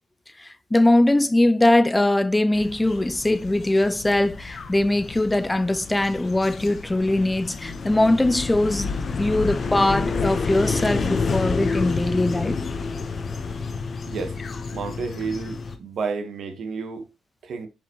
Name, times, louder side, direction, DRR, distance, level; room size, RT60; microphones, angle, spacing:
voice 1, 0.4-8.9 9.2-12.6, left 1 dB, 10° left, 0.3 m, -21 dB
sound 1, 2.5-15.8, left 4 dB, 40° left, 1.0 m, -29 dB
voice 2, 14.7-17.1 17.4-17.7, right 5 dB, 60° right, 1.3 m, -31 dB
7.4 x 5.1 x 3.1 m
cardioid pair, 90°, 0 cm